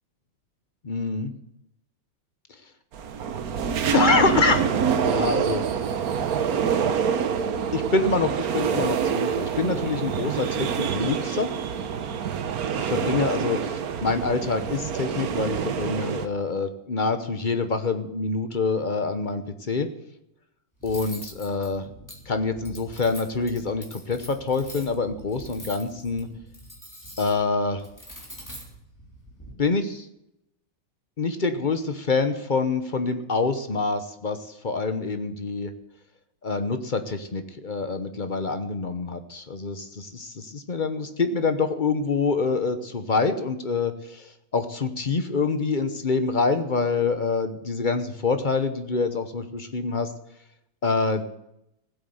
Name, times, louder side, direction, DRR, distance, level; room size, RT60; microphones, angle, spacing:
voice 1, 0.8-1.3 3.9-4.7 5.0-5.6 7.7-11.5 12.8-19.9 20.8-21.9 22.3-26.3 27.2-27.8 29.6-30.1 31.2-35.7 36.4-44.3 44.5-50.1 50.8-51.3, left 4 dB, 40° left, 9 dB, 0.6 m, -26 dB
sound 1, 2.9-16.3, right 7 dB, 55° right, 1.2 m, -26 dB
Cutlery silverware, 20.8-29.5, equal, 10° left, 3.3 m, -44 dB
15.5 x 8.4 x 7.8 m, 0.83 s
omnidirectional pair, 2.2 m